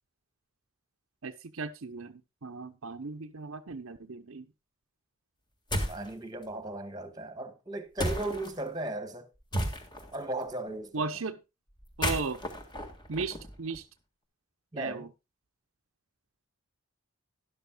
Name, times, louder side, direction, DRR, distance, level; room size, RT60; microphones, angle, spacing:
voice 1, 1.2-2.1 2.4-4.5 10.9-11.4 12.0-12.4 13.1-13.9 14.8-15.1, right 4 dB, 65° right, 0.7 m, -36 dB
sound 1, 5.7-6.1 8.0-8.5 9.5-10.2 11.8-13.8, equal, 20° left, 1.7 m, -33 dB
voice 2, 5.9-9.2 10.1-10.9 14.7-15.0, right 2 dB, 15° right, 1.4 m, -36 dB
12.5 x 11.0 x 2.3 m
head